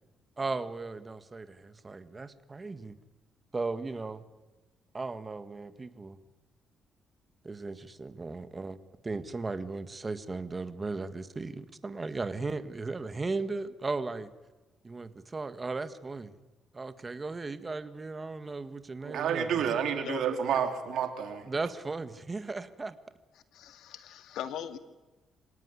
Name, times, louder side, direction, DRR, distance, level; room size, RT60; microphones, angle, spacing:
voice 1, 0.4-3.0 3.5-4.2 4.9-6.2 7.4-8.8 9.0-14.3 14.8-16.4 16.7-19.6 21.5-23.0, right 3 dB, 25° right, 11 dB, 1.7 m, -36 dB
voice 2, 19.0-21.5, right 8 dB, 75° right, 6 dB, 3.4 m, -30 dB
voice 3, 23.5-24.8, left 10 dB, 80° left, 9 dB, 1.9 m, -39 dB
26.0 x 18.0 x 9.9 m, 1.1 s
cardioid pair, 90°, 0 cm